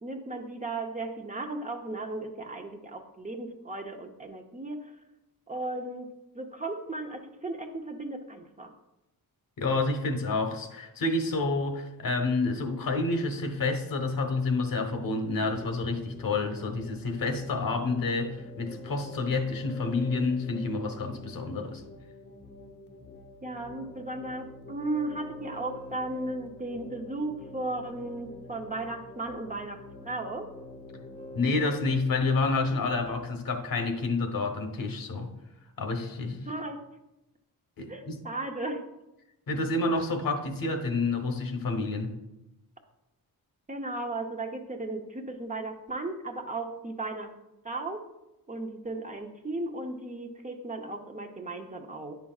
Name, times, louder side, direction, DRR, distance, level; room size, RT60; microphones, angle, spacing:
voice 1, 0.0-4.9 5.5-6.1 6.3-8.7 23.4-30.5 36.5-36.8 37.9-38.8 43.7-47.3 47.6-48.1 48.5-52.2, right 2 dB, 20° right, 3 dB, 0.6 m, -35 dB
voice 2, 9.6-21.8 31.3-35.3 35.8-36.5 37.8-38.2 39.5-42.2, left 3 dB, 65° left, 5 dB, 1.1 m, -29 dB
sound 1, 15.5-33.1, left 2 dB, 30° left, 0.8 m, -46 dB
9.7 x 5.8 x 2.3 m, 0.94 s
cardioid pair, 105°, 37 cm